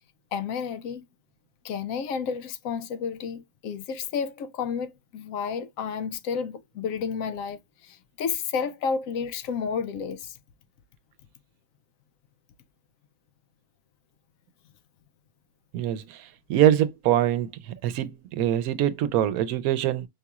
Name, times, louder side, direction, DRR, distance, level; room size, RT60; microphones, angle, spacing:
voice 1, 0.3-1.0 1.6-10.4, left 6 dB, 75° left, 1.0 m, -31 dB
voice 2, 15.7-16.2 16.5-17.5 17.8-20.1, right 11 dB, 85° right, 1.0 m, -23 dB
5.1 x 2.8 x 2.3 m
omnidirectional pair, 1.5 m